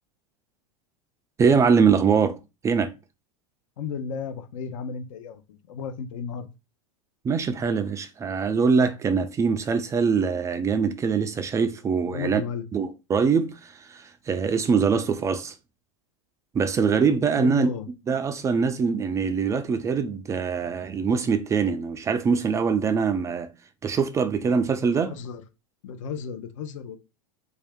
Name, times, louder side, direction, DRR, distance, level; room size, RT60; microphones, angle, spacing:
voice 1, 1.4-2.4 2.6-2.9 7.2-12.4 12.7-15.5 16.5-17.7 18.1-23.5 23.8-25.1, right 5 dB, 20° right, 0.3 m, -23 dB
voice 2, 3.8-6.5 12.1-12.7 17.4-17.9 25.0-25.4 25.8-27.0, left 6 dB, 75° left, 0.8 m, -34 dB
3.3 x 2.7 x 3.5 m
supercardioid pair, 125°, 17 cm